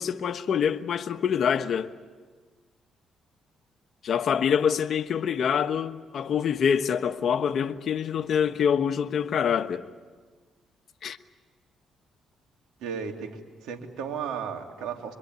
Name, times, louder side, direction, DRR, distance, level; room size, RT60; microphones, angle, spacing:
voice 1, 0.0-1.9 4.0-9.8 11.0-11.2, left 7 dB, 60° left, 1.2 m, -25 dB
voice 2, 12.8-13.3 13.6-15.2, right 7 dB, 90° right, 3.2 m, -34 dB
26.0 x 24.0 x 9.5 m
cardioid pair, 90°, 0 cm